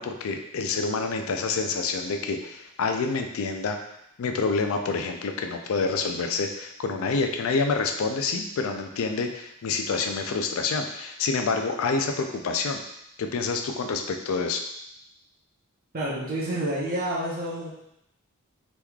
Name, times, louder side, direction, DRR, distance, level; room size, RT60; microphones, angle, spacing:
voice 1, 0.0-3.8 4.2-12.8 13.2-14.6, left 4 dB, 65° left, 5 dB, 0.4 m, -27 dB
voice 2, 15.9-17.7, right 1 dB, 45° right, -6 dB, 0.7 m, -29 dB
3.5 x 3.0 x 2.3 m, 0.80 s
head